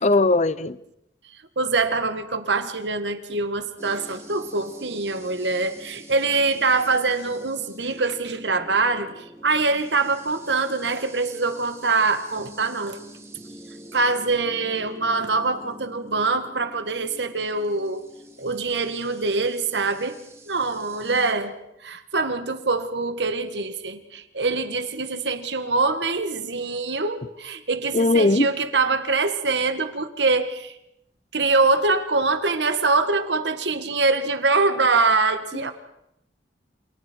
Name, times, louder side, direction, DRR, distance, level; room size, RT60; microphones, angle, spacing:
voice 1, 0.0-0.8 27.9-28.5, left 2 dB, 40° left, 17 dB, 0.8 m, -19 dB
voice 2, 1.6-13.0 13.9-18.0 18.4-20.2 20.5-21.5 21.8-30.8 31.3-35.7, right 3 dB, 90° right, 9 dB, 1.9 m, -24 dB
sound 1, 3.8-21.3, right 1 dB, 15° right, 2.4 m, -46 dB
28.5 x 28.0 x 4.6 m, 0.81 s
head